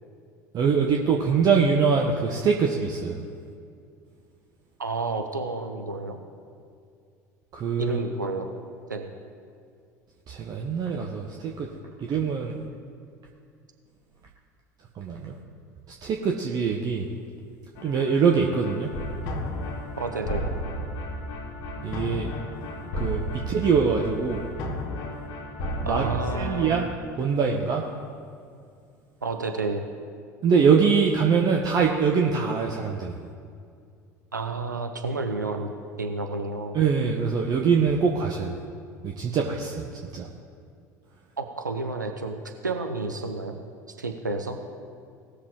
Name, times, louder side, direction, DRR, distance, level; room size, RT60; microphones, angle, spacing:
voice 1, 0.5-3.2 7.5-8.0 10.3-11.7 12.0-12.6 15.0-15.3 16.0-17.1 17.8-18.9 21.8-22.3 23.0-24.4 25.8-26.8 27.2-27.8 30.4-33.1 36.7-38.6 39.0-39.8 40.1-40.3, right 6 dB, 40° right, 0 dB, 1.0 m, -23 dB
voice 2, 4.8-6.2 7.8-8.5 8.9-9.1 20.0-20.5 25.8-26.8 29.2-29.8 34.3-35.7 36.0-36.8 41.4-42.4 42.6-43.6 44.0-44.6, right 3 dB, 90° right, 4 dB, 0.7 m, -30 dB
sound 1, 17.8-26.9, equal, 50° left, 1.6 m, -33 dB
18.5 x 6.7 x 3.7 m, 2.3 s
figure-of-eight pair, 65°, 10 cm